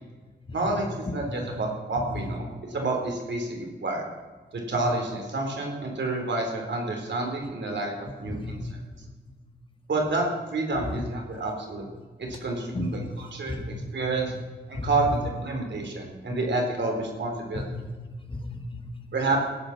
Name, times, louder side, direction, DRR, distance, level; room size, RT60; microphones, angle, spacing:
voice 1, 0.5-4.1 4.5-8.6 9.9-11.9 12.2-13.6 13.9-14.3 14.7-17.6 19.1-19.4, right 2 dB, 80° right, 1 dB, 3.7 m, -29 dB
voice 2, 12.7-13.1 13.5-13.6 14.7-14.9 17.8-19.1, left 2 dB, 30° left, 5 dB, 1.7 m, -35 dB
16.5 x 8.9 x 6.0 m, 1.3 s
wide cardioid pair, 110°, 18 cm